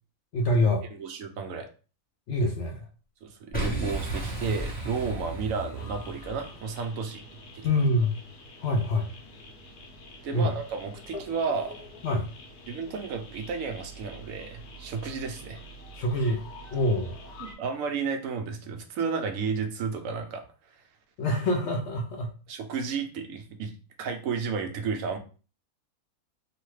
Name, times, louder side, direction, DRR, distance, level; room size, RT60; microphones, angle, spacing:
voice 1, 0.3-0.8 2.3-2.8 7.6-8.1 8.6-9.0 10.3-10.5 12.0-12.3 16.0-16.4 16.7-17.3 21.2-22.3, left 1 dB, 65° left, 2 dB, 0.7 m, -25 dB
voice 2, 0.9-1.7 3.2-7.2 7.5-7.7 10.2-11.8 12.7-15.6 17.4-20.4 22.5-23.7 24.0-25.2, right 5 dB, 70° right, 5 dB, 0.9 m, -32 dB
Boom, 3.5-6.5, right 1 dB, 10° left, 0.7 m, -33 dB
sound 1, 5.7-17.5, left 1 dB, 85° left, 1.2 m, -46 dB
3.1 x 2.1 x 3.1 m, 0.36 s
omnidirectional pair, 1.6 m